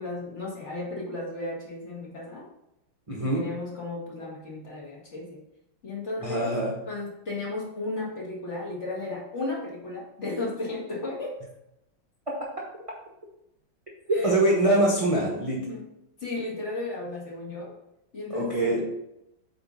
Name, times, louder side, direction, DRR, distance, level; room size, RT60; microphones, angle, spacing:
voice 1, 0.0-2.4 3.2-5.4 5.8-6.6 6.9-11.4 14.1-14.4 15.6-15.9 16.2-17.7 18.1-18.8, left 2 dB, 35° left, -4 dB, 2.1 m, -34 dB
voice 2, 3.1-3.5 6.2-6.7 14.2-15.6 18.3-18.8, right 1 dB, 25° right, -3 dB, 0.8 m, -23 dB
8.6 x 4.0 x 4.0 m, 0.84 s
omnidirectional pair, 2.2 m